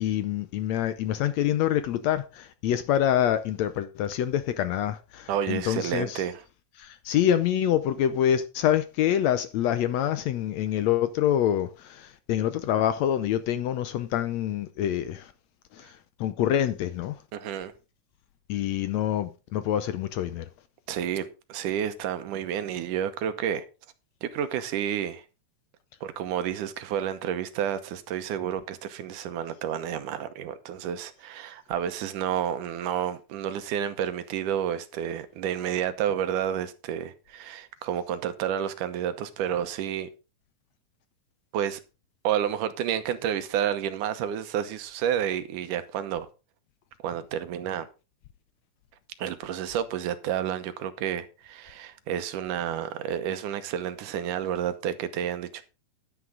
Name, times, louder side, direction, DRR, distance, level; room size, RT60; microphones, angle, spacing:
voice 1, 0.0-6.2 6.8-15.3 15.7-17.2 18.5-20.5, left 11 dB, 75° left, 1.7 m, -26 dB
voice 2, 5.3-6.4 17.3-17.7 20.9-23.6 24.2-25.2 26.0-40.1 41.5-41.8 42.2-46.3 47.0-47.9 49.2-55.6, right 9 dB, 80° right, 2.5 m, -30 dB
11.0 x 9.5 x 3.8 m
omnidirectional pair, 3.7 m